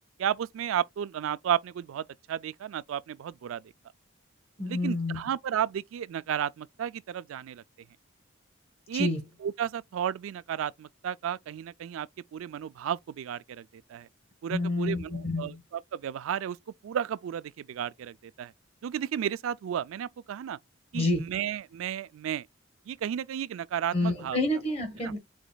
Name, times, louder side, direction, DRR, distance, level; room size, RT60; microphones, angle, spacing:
voice 1, 0.2-3.6 4.6-7.6 8.9-9.1 9.4-14.1 14.4-16.6 16.8-18.5 18.8-20.6 20.9-22.5 22.9-24.4 25.0-25.1, right 9 dB, 75° right, 0.3 m, -33 dB
voice 2, 4.6-5.3 8.9-9.2 14.5-15.6 20.9-21.3 23.9-25.2, left 2 dB, 30° left, 1.1 m, -29 dB
4.9 x 3.9 x 2.2 m
head